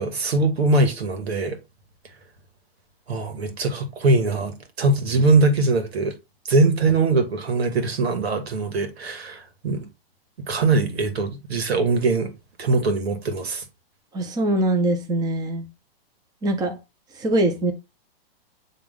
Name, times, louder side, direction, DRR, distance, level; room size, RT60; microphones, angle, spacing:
voice 1, 0.0-1.6 3.1-6.2 6.5-9.9 10.5-12.3 12.6-13.6, right 3 dB, 90° right, 2.4 m, -22 dB
voice 2, 14.1-15.7 16.4-16.8 17.2-17.7, right 1 dB, 15° right, 1.0 m, -22 dB
9.1 x 3.6 x 3.9 m
hypercardioid pair, 150°, 30 cm